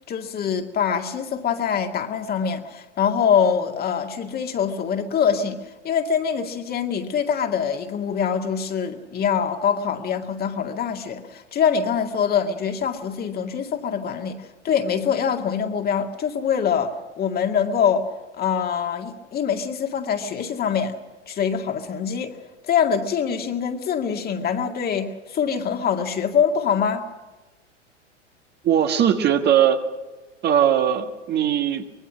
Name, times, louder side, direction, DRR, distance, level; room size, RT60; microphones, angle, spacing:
voice 1, 0.1-5.6 5.8-21.0 21.3-22.4 22.6-27.1, left 7 dB, 25° left, 5 dB, 2.1 m, -24 dB
voice 2, 28.6-29.8 30.4-31.9, right 9 dB, 30° right, 6 dB, 1.6 m, -19 dB
24.5 x 21.0 x 6.3 m, 1.2 s
figure-of-eight pair, 95°, 36 cm